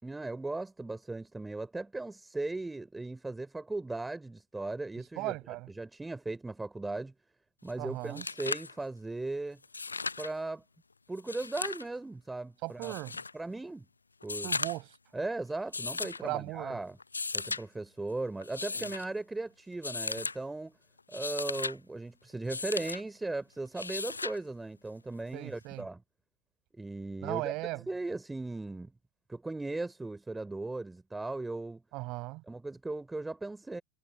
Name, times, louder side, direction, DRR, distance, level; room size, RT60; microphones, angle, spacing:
voice 1, 0.0-5.4 5.8-7.1 7.6-9.6 10.2-10.6 11.1-12.9 13.3-13.9 14.2-14.5 15.1-17.0 17.3-20.7 21.1-26.0 26.7-28.9 29.3-31.8 32.5-33.8, right 2 dB, 5° right, 3.7 m, -37 dB
voice 2, 5.2-5.7 7.8-8.2 12.6-13.1 14.4-14.9 16.2-16.8 18.7-18.9 25.3-25.8 27.2-27.9 31.9-32.4, right 22 dB, 40° right, 5.7 m, -37 dB
sound 1, 7.7-7.8 8.0-8.7 9.6-10.3 11.2-11.9 12.8-13.3 14.2-14.9 15.7-16.2 17.0-17.6 18.4-19.0 19.8-20.4 21.0-21.8 22.5-23.0 23.8-24.4 25.8-25.9, left 4 dB, 80° left, 0.8 m, -36 dB
figure-of-eight pair, 90°, 0 cm